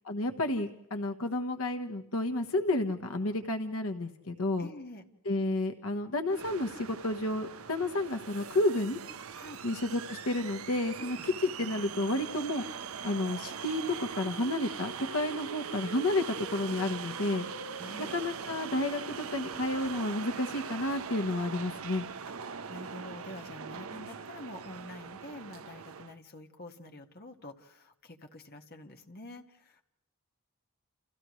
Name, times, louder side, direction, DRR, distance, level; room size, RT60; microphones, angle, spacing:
voice 1, 0.1-4.7 5.2-9.0 9.6-12.6 13.0-17.4 18.1-22.0, left 2 dB, 75° left, 6 dB, 1.3 m, -31 dB
voice 2, 4.6-5.1 9.3-9.6 11.0-11.3 17.7-18.2 22.7-29.8, left 1 dB, 45° left, 4 dB, 1.8 m, -47 dB
sound 1, 6.3-26.2, right 6 dB, 75° right, 0.8 m, -41 dB
30.0 x 29.5 x 3.2 m, 0.82 s
head